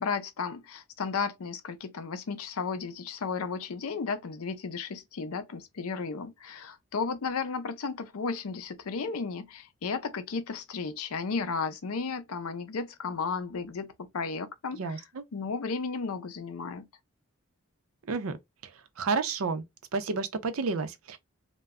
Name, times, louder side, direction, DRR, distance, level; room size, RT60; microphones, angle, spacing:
voice 1, 0.0-15.0 15.3-16.9, left 5 dB, 85° left, 0.5 m, -34 dB
voice 2, 14.7-15.2 18.1-18.4 18.6-18.7 19.0-19.6 19.9-21.2, right 4 dB, 80° right, 0.5 m, -30 dB
2.2 x 2.0 x 3.5 m
head